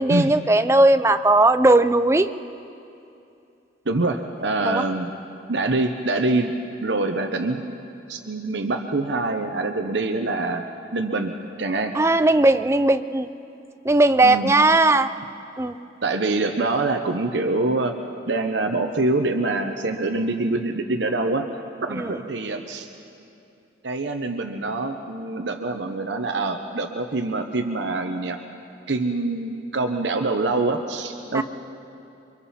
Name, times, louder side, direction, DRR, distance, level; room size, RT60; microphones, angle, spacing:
voice 1, 0.0-2.3 4.6-4.8 11.9-13.3 13.8-15.1 15.6-15.8 21.9-22.1 31.3-31.4, right 2 dB, 15° right, 11 dB, 0.4 m, -18 dB
voice 2, 3.9-5.1 5.5-6.5 6.8-7.6 8.1-10.7 10.9-11.3 11.6-11.9 14.2-14.5 16.0-17.9 18.3-21.5 21.8-22.9 23.8-28.4 28.9-31.4, right 2 dB, 70° right, 5 dB, 0.9 m, -25 dB
28.5 x 24.0 x 4.3 m, 2.7 s
head